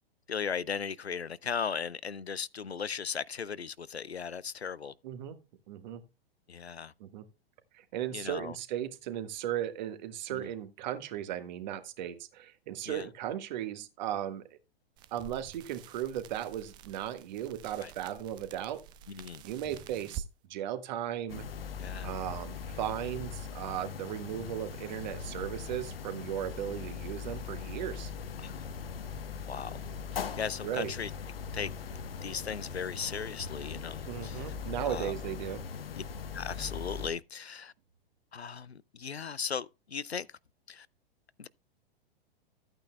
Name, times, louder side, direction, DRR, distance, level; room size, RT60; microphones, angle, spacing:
voice 1, 0.3-4.9 6.5-6.9 8.1-8.6 10.3-10.5 12.9-13.1 17.8-17.9 19.1-19.4 21.8-22.1 28.4-28.7 29.5-29.8 30.1-31.1 31.5-31.7 32.2-34.5 34.9-35.1 35.9-36.0 36.3-37.7 38.3-40.3 40.7-40.9 41.4-41.5, left 6 dB, 90° left, 0.5 m, -37 dB
voice 2, 5.0-5.4 5.7-6.0 7.0-7.2 7.7-14.6 15.1-18.8 19.4-20.2 20.5-21.4 22.0-28.1 30.6-30.9 34.1-35.6, right 11 dB, 45° right, 1.5 m, -36 dB
sound 1, 15.0-20.3, right 9 dB, 15° right, 0.4 m, -47 dB
sound 2, 21.3-37.1, left 6 dB, 65° left, 1.1 m, -40 dB
13.5 x 8.9 x 2.2 m
figure-of-eight pair, 105°, 31 cm